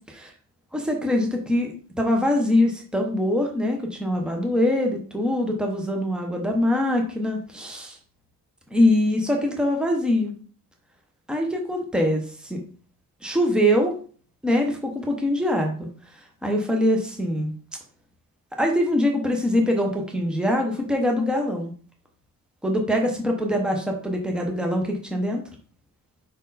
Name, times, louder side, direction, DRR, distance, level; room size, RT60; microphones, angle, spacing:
voice 1, 0.7-8.0 8.7-10.3 11.3-12.6 13.2-13.9 14.4-15.9 16.4-17.5 18.6-21.7 22.6-25.4, left 1 dB, ahead, 2 dB, 1.0 m, -23 dB
5.4 x 4.4 x 4.1 m, 0.42 s
cardioid pair, 170°, 35 cm